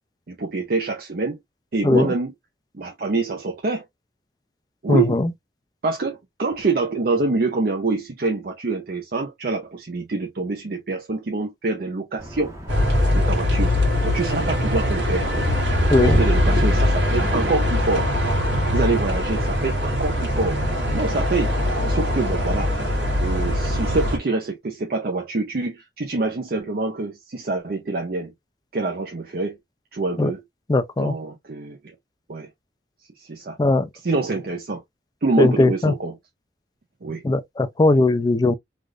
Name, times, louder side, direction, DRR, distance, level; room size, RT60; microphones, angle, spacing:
voice 1, 0.3-1.4 1.7-2.3 2.7-3.8 4.8-5.2 5.8-12.6 13.1-13.8 14.0-15.4 16.0-18.1 18.7-20.6 20.9-21.5 21.8-22.7 23.2-28.3 28.7-29.6 29.9-30.4 31.0-31.8 32.3-32.5 33.2-33.6 34.0-34.8 35.2-36.2 37.0-37.2, right 3 dB, 55° right, 0.6 m, -26 dB
voice 2, 1.8-2.1 4.9-5.3 15.9-16.2 30.2-30.3 30.7-31.1 33.6-33.9 35.4-35.9 37.2-38.5, left 2 dB, 20° left, 0.3 m, -18 dB
sound 1, 12.2-17.6, equal, 15° right, 1.0 m, -37 dB
sound 2, 12.7-24.2, left 1 dB, 85° right, 1.5 m, -21 dB
3.3 x 2.4 x 2.4 m
head